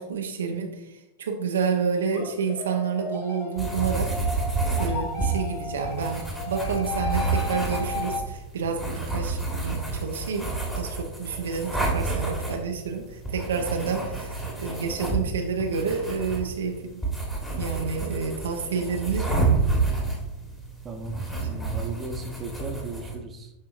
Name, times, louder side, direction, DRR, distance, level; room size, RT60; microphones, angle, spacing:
voice 1, 0.0-4.1 4.8-10.5 10.8-17.0 17.6-19.3 21.4-21.6, right 5 dB, 65° right, 3 dB, 0.6 m, -29 dB
sound 1, 2.1-8.2, left 3 dB, 40° left, 1.1 m, -34 dB
sound 2, 3.6-23.1, right 3 dB, 10° left, 1.6 m, -29 dB
voice 2, 17.9-19.4 20.8-23.5, right 2 dB, 20° right, 3 dB, 0.9 m, -38 dB
10.5 x 3.7 x 2.5 m, 0.94 s
figure-of-eight pair, 90°, 0 cm